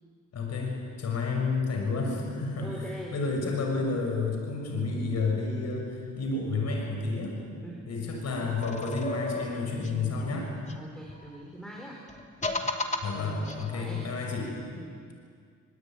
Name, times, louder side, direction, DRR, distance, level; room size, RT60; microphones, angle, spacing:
voice 1, 0.3-2.7 3.1-7.4 7.9-10.5 13.0-14.5, left 3 dB, 60° left, 1 dB, 6.8 m, -30 dB
voice 2, 2.5-3.2 7.6-7.9 10.8-12.0 13.7-14.1 14.7-15.0, right 1 dB, ahead, -1 dB, 4.7 m, -43 dB
sound 1, 8.6-11.4 12.1-14.1, left 2 dB, 25° left, 2.9 m, -35 dB
24.5 x 22.5 x 9.4 m, 2.1 s
cardioid pair, 90°, 30 cm